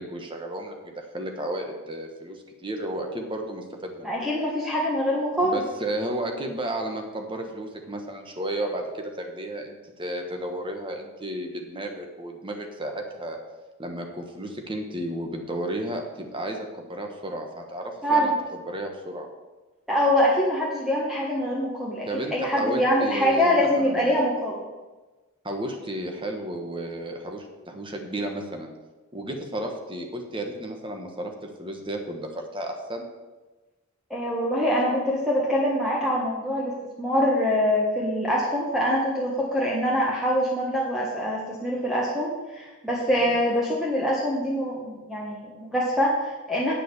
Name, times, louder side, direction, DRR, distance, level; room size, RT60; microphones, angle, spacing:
voice 1, 0.0-4.1 5.4-13.4 13.8-19.3 22.1-24.2 25.4-28.7 29.1-31.3 31.6-33.0 43.2-43.4, right 1 dB, 20° right, 3 dB, 1.3 m, -33 dB
voice 2, 4.0-5.6 18.0-18.4 19.9-24.6 34.1-46.7, equal, ahead, -5 dB, 1.4 m, -24 dB
8.9 x 7.6 x 7.0 m, 1.2 s
head